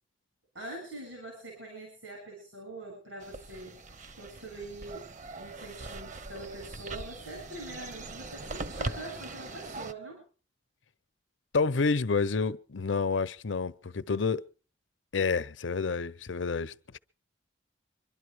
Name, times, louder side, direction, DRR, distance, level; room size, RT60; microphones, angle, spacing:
voice 1, 0.5-3.8 4.2-10.2, right 1 dB, 85° right, 6.9 m, -44 dB
sound 1, 3.2-9.9, right 3 dB, 40° right, 0.7 m, -41 dB
voice 2, 11.5-14.4 15.1-17.0, left 4 dB, 70° left, 0.7 m, -29 dB
25.0 x 12.0 x 4.9 m
head